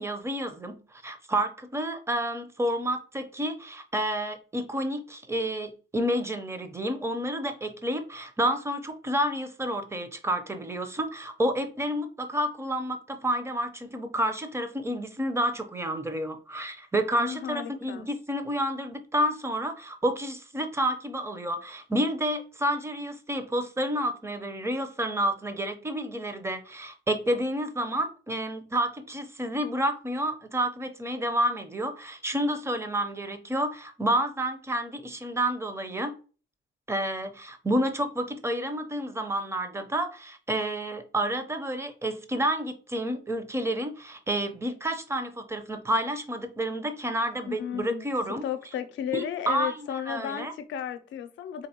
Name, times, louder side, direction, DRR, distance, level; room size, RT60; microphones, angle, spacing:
voice 1, 0.0-36.1 36.9-48.4 49.1-50.5, right 1 dB, 15° right, 0.6 m, -30 dB
voice 2, 17.2-18.1 47.5-48.1 48.4-51.7, left 9 dB, 70° left, 0.6 m, -34 dB
4.1 x 2.9 x 2.9 m
cardioid pair, 90°, 20 cm